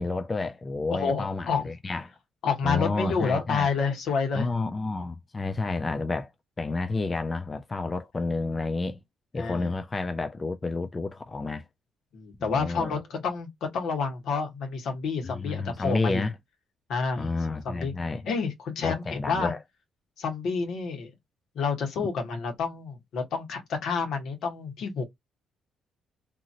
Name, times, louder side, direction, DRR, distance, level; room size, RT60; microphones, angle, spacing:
voice 1, 0.0-2.1 2.6-3.7 4.3-6.3 6.6-9.0 9.3-11.6 12.4-13.0 15.2-16.3 17.2-18.2 18.8-19.6, left 3 dB, 25° left, 0.4 m, -30 dB
voice 2, 0.9-1.7 2.4-4.5 9.4-9.7 12.1-16.2 16.9-17.3 17.6-17.9 18.3-19.5 20.2-21.1 21.5-25.0, left 5 dB, 75° left, 1.3 m, -29 dB
2.8 x 2.7 x 2.5 m
cardioid pair, 90°, 0 cm